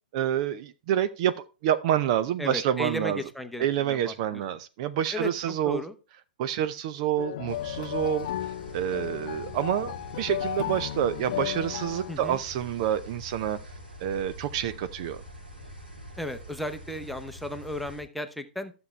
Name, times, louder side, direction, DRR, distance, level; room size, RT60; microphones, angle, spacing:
voice 1, 0.1-3.2 3.6-5.8 6.4-13.6 14.0-15.2, right 10 dB, 45° right, 0.6 m, -28 dB
voice 2, 2.4-4.4 5.1-5.9 12.1-12.4 16.2-18.7, left 1 dB, ahead, 0.9 m, -35 dB
sound 1, 7.2-12.1, left 12 dB, 50° left, 0.5 m, -34 dB
sound 2, 7.5-18.0, equal, 90° right, 4.1 m, -45 dB
13.0 x 7.0 x 3.3 m
figure-of-eight pair, 110°, 5 cm